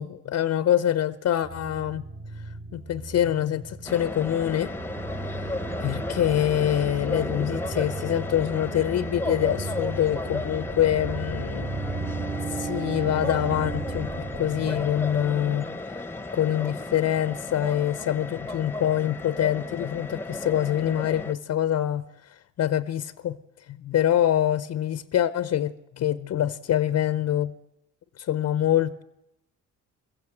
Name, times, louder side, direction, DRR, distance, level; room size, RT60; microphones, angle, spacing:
voice 1, 0.0-2.0 2.7-4.7 5.8-11.7 12.5-15.7 16.3-23.4 23.7-27.5 28.2-29.0, left 11 dB, 60° left, 0.8 m, -25 dB
sound 1, 1.4-15.3, right 3 dB, 45° right, 4.2 m, -36 dB
sound 2, 3.9-21.3, left 2 dB, 5° left, 1.0 m, -34 dB
22.0 x 15.0 x 7.8 m
cardioid pair, 90°, 30 cm